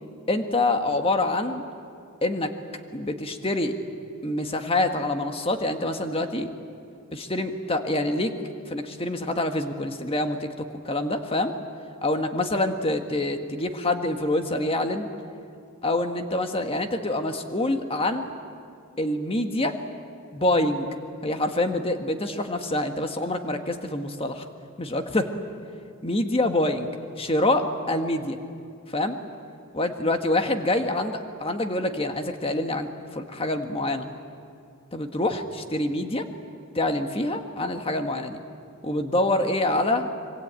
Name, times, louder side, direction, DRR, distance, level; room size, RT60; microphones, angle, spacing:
voice 1, 0.3-1.6 2.2-2.5 2.9-3.8 4.2-6.5 7.1-8.3 8.7-10.5 10.8-11.5 12.0-15.1 15.8-18.3 19.0-19.8 20.3-20.9 21.2-24.4 24.8-25.3 26.0-26.9 27.2-28.4 28.9-29.2 29.7-32.9 33.1-34.1 34.9-36.2 36.7-38.4 38.8-40.2, left 1 dB, 25° left, 6 dB, 1.6 m, -26 dB
25.5 x 24.0 x 9.0 m, 2.3 s
head